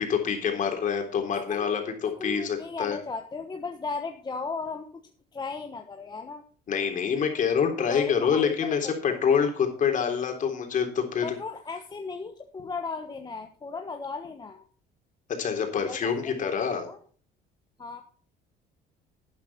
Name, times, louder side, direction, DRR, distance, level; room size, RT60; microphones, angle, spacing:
voice 1, 0.0-3.0 6.7-11.3 15.4-16.9, left 7 dB, 45° left, 4 dB, 3.5 m, -26 dB
voice 2, 1.3-1.7 2.0-6.4 7.8-9.3 11.2-14.6 15.7-17.0 17.8-18.0, left 4 dB, 20° left, 5 dB, 1.2 m, -37 dB
12.0 x 9.5 x 4.2 m, 0.43 s
cardioid pair, 115°, 18 cm